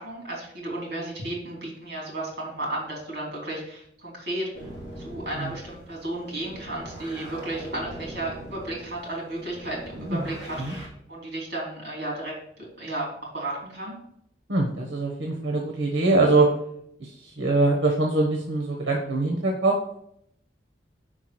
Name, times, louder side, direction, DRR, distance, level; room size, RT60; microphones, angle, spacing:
voice 1, 0.0-4.7 5.0-14.0, right 1 dB, 55° right, -2 dB, 3.0 m, -34 dB
sound 1, 4.5-10.9, right 1 dB, 20° left, 3.0 m, -41 dB
voice 2, 14.5-16.5 17.0-19.8, right 2 dB, 80° right, -1 dB, 1.0 m, -23 dB
5.1 x 4.7 x 5.9 m, 0.72 s
head